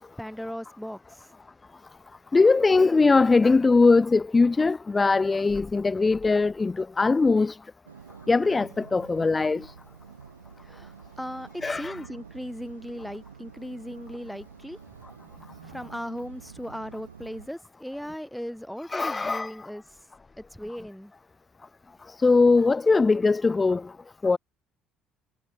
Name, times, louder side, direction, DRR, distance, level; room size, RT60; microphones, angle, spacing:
voice 1, 0.2-1.3 10.6-14.8 15.6-20.1 20.4-21.1, equal, ahead, 6.5 m, -38 dB
voice 2, 2.3-7.6 8.3-9.7 11.6-12.0 18.9-19.5 22.2-23.8 24.2-24.4, left 3 dB, 20° left, 0.4 m, -21 dB
sound 1, 7.9-17.5, right 6 dB, 80° right, 4.6 m, -48 dB
figure-of-eight pair, 55°, 0 cm